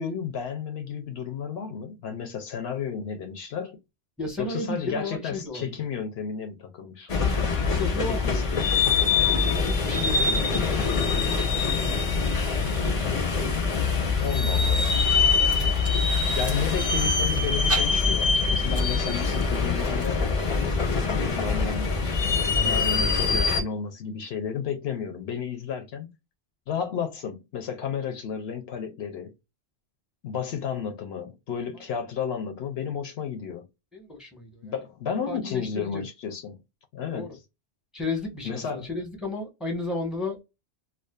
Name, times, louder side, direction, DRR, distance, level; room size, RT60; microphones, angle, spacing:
voice 1, 0.0-3.8 4.4-7.5 8.1-8.9 14.2-15.1 16.3-20.2 21.0-22.2 22.5-26.1 26.7-29.3 30.2-33.6 34.6-36.6 36.9-37.4 38.4-38.9, left 7 dB, 70° left, 0.8 m, -32 dB
voice 2, 4.2-5.7 7.8-8.4 9.3-12.3 33.9-34.7 35.3-36.0 37.1-37.3 37.9-40.4, left 2 dB, ahead, 0.8 m, -34 dB
sound 1, 7.1-23.6, left 4 dB, 35° left, 0.6 m, -24 dB
sound 2, 15.4-20.9, right 1 dB, 20° right, 0.4 m, -39 dB
2.5 x 2.3 x 2.2 m
omnidirectional pair, 1.1 m